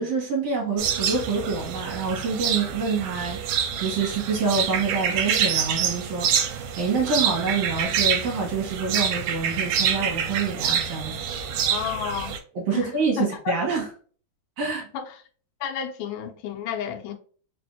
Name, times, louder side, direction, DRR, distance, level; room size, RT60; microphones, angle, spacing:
voice 1, 0.0-11.2 12.5-13.9 14.6-14.9, right 4 dB, 60° right, 2.0 m, -27 dB
sound 1, 0.8-12.4, right 8 dB, 80° right, 2.0 m, -26 dB
voice 2, 11.7-12.3 12.7-12.9 13.2-13.5 14.9-15.2 15.6-17.1, left 8 dB, 85° left, 2.2 m, -31 dB
4.9 x 2.5 x 2.7 m
omnidirectional pair, 3.7 m